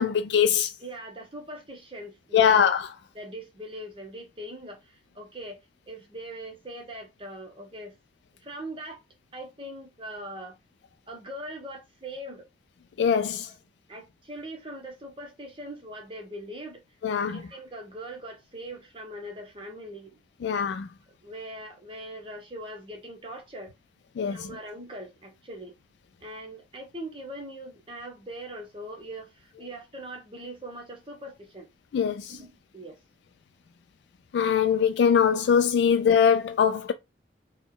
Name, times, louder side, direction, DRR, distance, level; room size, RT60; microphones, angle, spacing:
voice 1, 0.0-0.7 2.3-2.9 13.0-13.5 17.0-17.4 20.4-20.9 24.2-24.4 31.9-32.3 34.3-36.9, left 7 dB, 75° left, 0.3 m, -22 dB
voice 2, 0.8-2.7 3.1-5.6 5.9-8.0 8.4-9.0 9.3-10.6 11.1-12.5 13.4-13.6 13.9-16.8 17.3-20.2 21.2-23.7 24.3-25.7 26.2-31.7 32.2-33.0, right 1 dB, 30° right, 1.0 m, -41 dB
4.0 x 2.2 x 3.7 m
head